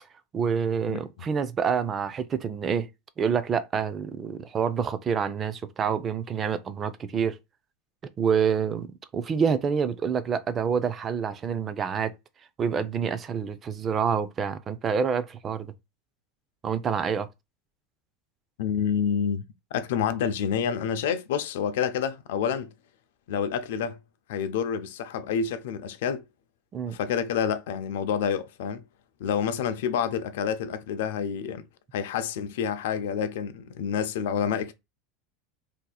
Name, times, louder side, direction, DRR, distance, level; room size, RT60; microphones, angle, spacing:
voice 1, 0.3-2.9 3.2-7.4 8.2-12.1 12.6-15.7 16.6-17.3 26.7-27.0, right 6 dB, 20° right, 0.3 m, -27 dB
voice 2, 0.9-1.3 18.6-22.7 23.3-24.0 24.3-26.2 26.9-28.8 29.2-31.7 31.9-34.7, left 7 dB, 80° left, 0.5 m, -28 dB
2.7 x 2.4 x 4.0 m
supercardioid pair, 170°, 0 cm